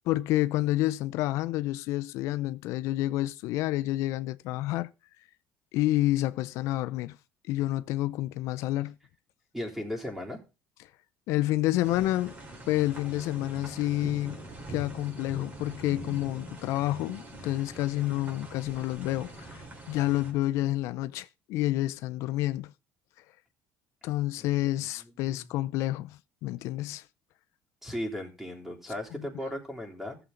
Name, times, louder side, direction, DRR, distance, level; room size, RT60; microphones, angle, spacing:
voice 1, 0.1-4.9 5.7-7.2 7.5-9.0 11.3-12.4 12.7-14.4 14.7-22.7 24.0-27.0 29.1-29.3, left 16 dB, 75° left, 0.5 m, -29 dB
voice 2, 9.5-10.4 24.4-24.5 25.0-25.5 27.8-30.2, left 1 dB, 5° right, 3.5 m, -36 dB
sound 1, 11.8-20.3, right 1 dB, 35° right, 4.2 m, -43 dB
15.0 x 7.1 x 3.8 m
cardioid pair, 115°, 5 cm